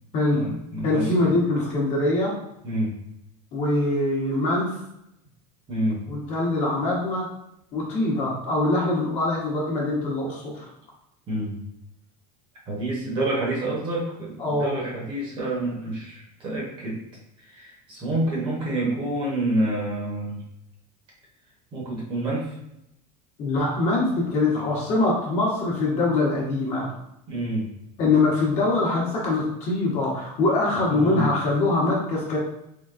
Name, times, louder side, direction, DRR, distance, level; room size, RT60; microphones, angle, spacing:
voice 1, 0.3-1.3 2.6-2.9 5.7-6.0 11.3-11.6 12.7-17.0 17.4-20.4 21.7-22.6 27.3-27.7 30.8-31.3, right 1 dB, 25° right, -4 dB, 0.9 m, -28 dB
voice 2, 0.8-2.3 3.5-4.8 6.1-7.3 7.7-10.7 14.4-14.8 23.4-26.9 28.0-32.4, left 2 dB, 35° left, -4 dB, 1.1 m, -23 dB
3.8 x 3.5 x 2.4 m, 0.81 s
cardioid pair, 175°, 19 cm